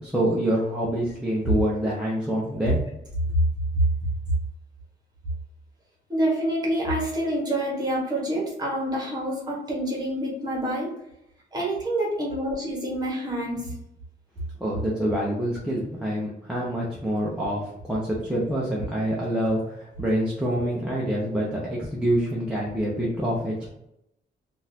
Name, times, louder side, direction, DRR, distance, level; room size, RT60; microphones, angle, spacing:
voice 1, 0.0-2.8 14.6-23.7, equal, 5° right, -5 dB, 0.6 m, -26 dB
voice 2, 6.1-10.9 11.5-13.7, right 1 dB, 20° right, -2 dB, 1.2 m, -27 dB
3.8 x 2.5 x 2.7 m, 0.81 s
wide cardioid pair, 165°, 18 cm